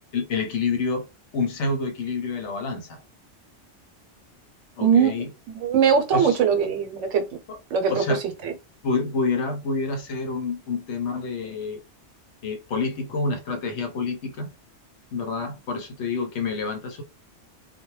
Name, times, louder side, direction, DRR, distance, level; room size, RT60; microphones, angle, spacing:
voice 1, 0.1-1.1 1.3-3.0 4.8-5.3 6.1-6.6 7.5-7.6 7.9-8.2 8.8-11.8 12.4-14.5 15.1-17.0, left 4 dB, 70° left, 0.9 m, -28 dB
voice 2, 4.8-5.1 5.6-7.2 7.7-8.0 8.4-8.5, right 7 dB, 75° right, 1.0 m, -20 dB
2.2 x 2.1 x 3.0 m
omnidirectional pair, 1.3 m